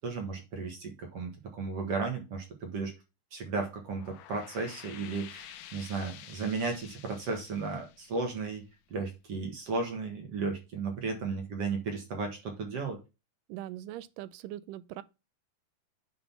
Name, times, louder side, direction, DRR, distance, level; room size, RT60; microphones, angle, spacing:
voice 1, 0.0-2.9 3.3-8.6 8.9-13.0, right 4 dB, 50° right, 2.2 m, -34 dB
sound 1, 3.8-9.0, left 11 dB, 90° left, 2.8 m, -50 dB
voice 2, 13.5-15.0, right 13 dB, 85° right, 2.0 m, -41 dB
9.4 x 3.9 x 5.8 m
omnidirectional pair, 4.3 m